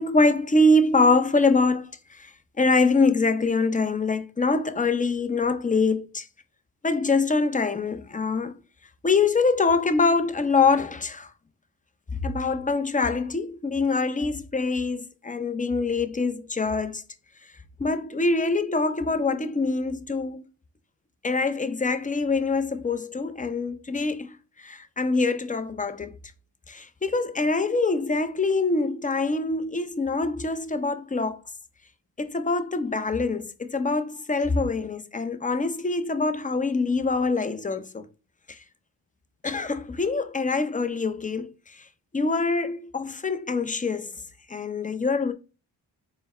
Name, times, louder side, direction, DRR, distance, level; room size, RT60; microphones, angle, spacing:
voice 1, 0.0-1.9 2.2-2.3 2.6-6.3 6.8-8.5 9.0-11.3 12.2-17.0 17.8-20.4 21.2-24.3 24.6-26.1 26.7-31.4 32.2-38.1 39.4-41.5 42.1-44.1 44.5-45.3, left 3 dB, 15° left, 0.5 m, -24 dB
3.5 x 2.1 x 4.1 m
supercardioid pair, 45°, 47 cm